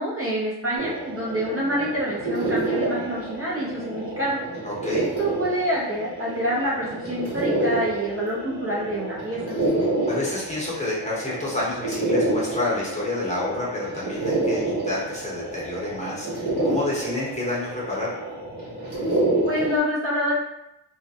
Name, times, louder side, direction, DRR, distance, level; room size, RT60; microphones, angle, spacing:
voice 1, 0.0-4.4 5.2-9.6 19.4-20.3, equal, 35° right, -7 dB, 0.7 m, -27 dB
sound 1, 0.8-19.8, right 2 dB, 65° right, 1.1 m, -28 dB
voice 2, 4.6-5.1 10.1-18.1, left 2 dB, 15° left, -7 dB, 0.9 m, -29 dB
2.3 x 2.1 x 2.7 m, 0.85 s
wide cardioid pair, 70°, 42 cm